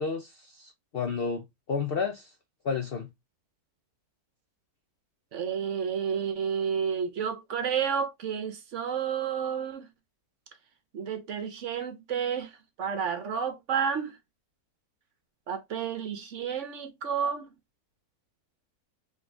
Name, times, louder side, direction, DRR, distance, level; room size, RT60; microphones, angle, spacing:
voice 1, 0.0-2.3 2.6-3.1, left 5 dB, 65° left, 0.5 m, -31 dB
voice 2, 5.3-9.9 10.9-14.2 15.5-17.5, right 7 dB, 60° right, 1.0 m, -31 dB
3.7 x 3.1 x 3.2 m
omnidirectional pair, 1.6 m